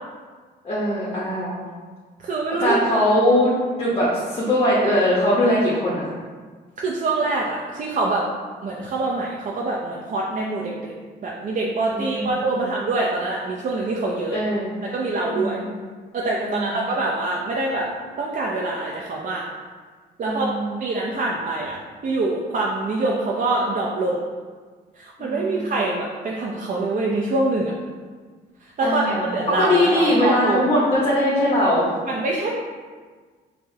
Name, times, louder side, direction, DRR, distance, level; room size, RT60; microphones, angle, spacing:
voice 1, 0.6-1.6 2.6-3.5 3.8-6.1 11.9-12.7 14.3-14.8 15.3-15.7 16.4-16.8 20.2-20.8 25.2-25.8 28.8-29.2 29.6-31.9, left 1 dB, 30° left, -7 dB, 0.8 m, -21 dB
voice 2, 2.2-3.0 6.8-8.3 8.6-10.9 11.2-14.4 14.8-15.6 16.1-17.9 18.2-19.4 20.2-20.5 20.8-24.3 25.0-27.7 28.8-30.7 32.1-32.5, right 2 dB, 40° right, -2 dB, 0.4 m, -25 dB
4.5 x 2.1 x 2.6 m, 1.5 s
cardioid pair, 90°, 20 cm